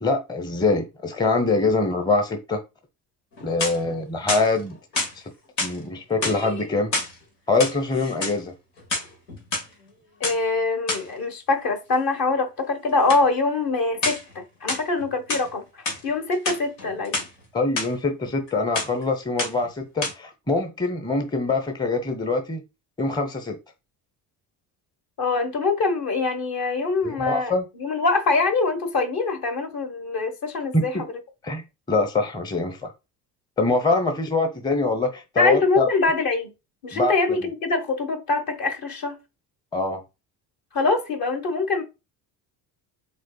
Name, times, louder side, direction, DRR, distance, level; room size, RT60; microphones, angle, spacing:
voice 1, 0.0-2.6 3.4-4.7 5.2-5.3 5.6-6.9 7.5-8.5 17.5-22.6 23.0-23.6 27.0-27.6 30.7-31.0 31.4-32.9 33.6-35.9 36.9-37.1 39.7-40.0, left 3 dB, 10° left, 0.7 m, -24 dB
sound 1, 3.3-3.9 4.3-5.1 5.6-5.8 6.1-7.1 7.5-8.4 8.8-9.6 10.2-10.4 10.9-11.1 13.1-13.3 14.0-14.3 14.7-15.5 15.8-16.0 16.3-17.3 17.8-17.9 18.2-18.5 18.7-19.0 19.4-19.7 20.0-20.1, left 2 dB, 85° left, 1.4 m, -28 dB
voice 2, 10.2-17.3 25.2-31.0 35.4-36.5 36.8-39.2 40.7-41.8, left 3 dB, 45° left, 1.3 m, -24 dB
5.1 x 3.7 x 2.3 m
hypercardioid pair, 55°, 48 cm